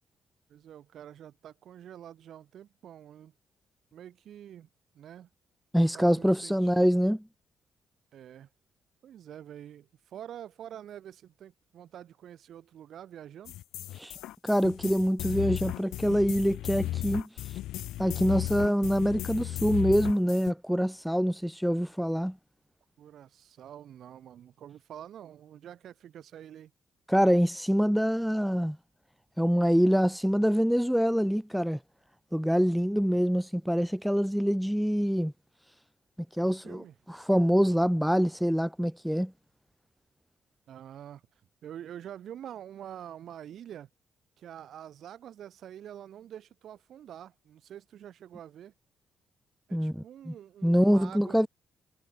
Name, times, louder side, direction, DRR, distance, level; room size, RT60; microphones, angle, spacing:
voice 1, 0.5-3.3 3.9-4.7 4.9-5.3 5.9-6.9 8.1-8.5 9.0-13.6 23.0-26.7 36.4-37.0 40.7-41.2 41.6-43.9 44.4-48.7 49.7-51.4, right 10 dB, 70° right, 6.2 m, -46 dB
voice 2, 5.7-7.2 14.0-14.1 14.4-17.6 18.0-22.3 27.1-28.8 29.4-31.8 32.3-35.3 36.3-36.8 37.1-39.3 49.7-50.3 50.6-51.5, equal, ahead, 0.3 m, -25 dB
sound 1, 13.5-20.5, left 14 dB, 85° left, 1.0 m, -35 dB
cardioid pair, 90°, 0 cm